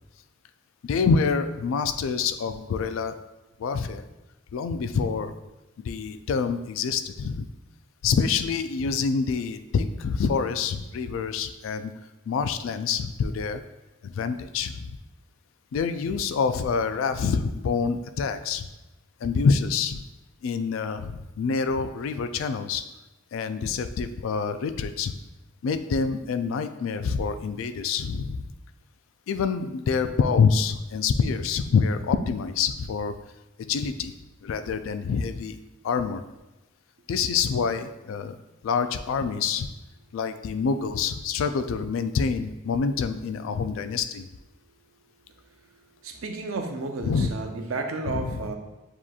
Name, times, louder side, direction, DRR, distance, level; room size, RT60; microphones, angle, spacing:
voice 1, 0.8-3.2 3.6-4.0 4.5-5.3 5.8-7.5 8.0-11.9 12.3-13.6 14.0-15.0 15.7-18.7 19.2-20.0 20.4-22.8 23.3-25.1 25.6-28.4 29.3-33.2 33.6-34.1 34.4-35.6 35.8-36.2 37.1-38.4 38.6-39.7 40.1-44.3 47.0-47.3 48.1-48.4, left 5 dB, 65° left, 10 dB, 0.3 m, -26 dB
voice 2, 46.0-48.6, right 3 dB, 70° right, 5 dB, 0.5 m, -32 dB
7.1 x 2.9 x 2.3 m, 1.0 s
head